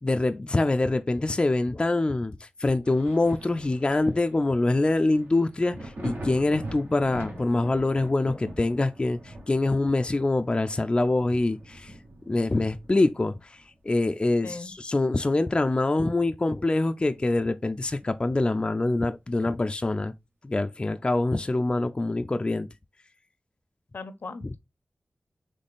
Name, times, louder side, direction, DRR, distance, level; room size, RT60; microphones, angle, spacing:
voice 1, 0.0-11.9 12.3-20.1 20.4-22.7 24.4-24.5, left 2 dB, 25° left, 0.3 m, -25 dB
Thunder, 2.8-14.2 14.6-16.1 16.4-16.5 17.1-18.4 19.8-19.9, right 1 dB, 70° right, 1.2 m, -43 dB
voice 2, 23.9-24.6, left 3 dB, 70° left, 0.6 m, -38 dB
4.0 x 3.2 x 3.5 m
wide cardioid pair, 65°, 4 cm